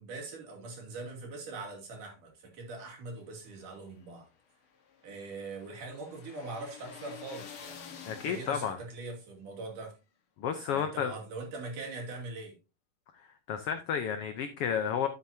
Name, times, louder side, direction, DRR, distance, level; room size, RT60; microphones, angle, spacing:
voice 1, 0.0-4.3 5.0-9.9 10.7-12.5, right 3 dB, 75° right, 4.3 m, -42 dB
sound 1, 3.5-9.0, left 7 dB, 50° left, 1.8 m, -50 dB
voice 2, 8.0-8.8 10.4-11.1 13.1-15.1, left 8 dB, 80° left, 1.3 m, -32 dB
11.0 x 8.1 x 2.7 m
omnidirectional pair, 3.7 m